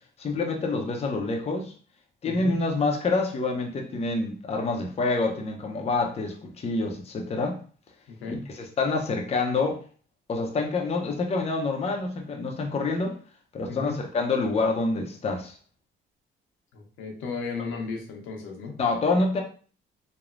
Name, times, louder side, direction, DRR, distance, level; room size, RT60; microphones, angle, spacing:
voice 1, 0.2-1.7 2.2-7.6 8.3-9.8 10.3-13.2 13.5-15.6 18.8-19.4, left 3 dB, 30° left, 1 dB, 0.5 m, -27 dB
voice 2, 2.2-2.6 8.2-8.5 13.7-14.0 16.7-18.8, left 4 dB, 85° left, 1 dB, 0.7 m, -34 dB
3.0 x 2.0 x 2.4 m, 0.41 s
cardioid pair, 90°, 20 cm